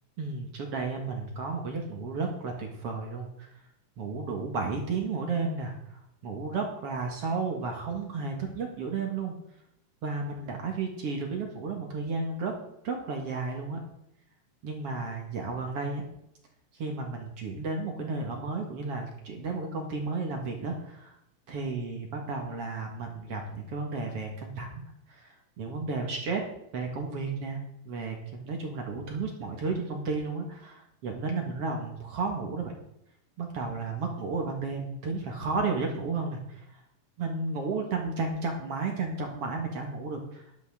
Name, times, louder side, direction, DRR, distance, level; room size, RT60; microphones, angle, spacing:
voice 1, 0.2-3.5 4.0-9.3 10.0-12.5 12.8-13.8 14.6-16.0 16.7-21.2 21.5-26.4 26.7-32.7 33.4-36.7 37.2-40.4, right 4 dB, 50° right, 2 dB, 2.1 m, -33 dB
11.5 x 11.5 x 3.6 m, 0.78 s
omnidirectional pair, 4.2 m